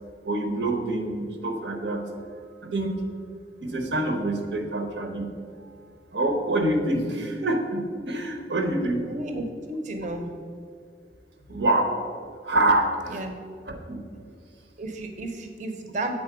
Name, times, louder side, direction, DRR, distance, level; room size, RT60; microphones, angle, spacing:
voice 1, 0.2-2.1 2.6-3.1 3.6-5.3 5.6-5.7 6.1-9.0 11.5-12.0 12.4-13.2 13.7-14.0, right 1 dB, 80° right, 4 dB, 0.9 m, -26 dB
voice 2, 9.0-10.3 13.1-13.3 14.8-16.2, right 1 dB, 45° right, 5 dB, 0.6 m, -33 dB
7.7 x 4.0 x 4.9 m, 2.2 s
head